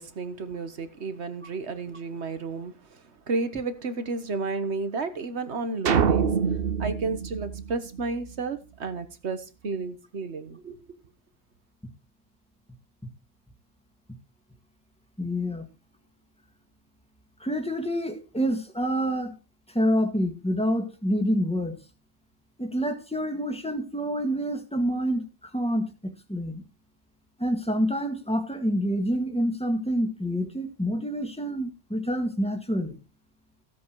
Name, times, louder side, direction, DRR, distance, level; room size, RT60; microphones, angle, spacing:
voice 1, 0.0-3.0 3.3-6.3 6.8-11.0, right 3 dB, 75° right, 1.6 m, -32 dB
sound 1, 5.9-8.3, right 6 dB, 60° right, 1.0 m, -25 dB
voice 2, 15.2-15.7 17.4-19.3 19.7-21.8 22.6-26.6 27.4-33.0, equal, 5° left, 2.0 m, -27 dB
15.5 x 8.1 x 4.7 m
omnidirectional pair, 1.1 m